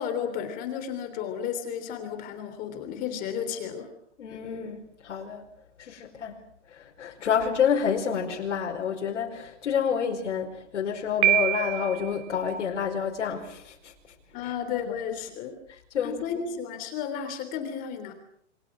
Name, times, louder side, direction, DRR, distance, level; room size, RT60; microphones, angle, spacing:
voice 1, 0.0-3.9 14.3-15.6 16.0-18.1, left 8 dB, 25° left, 3.4 m, -33 dB
voice 2, 4.2-5.4 5.8-6.4 6.7-13.9 14.4-14.5 14.9-15.0 15.9-16.2, left 7 dB, 75° left, 5.0 m, -29 dB
Piano, 11.2-12.2, right 13 dB, 35° right, 2.2 m, -24 dB
30.0 x 22.5 x 6.2 m
hypercardioid pair, 165°, 37 cm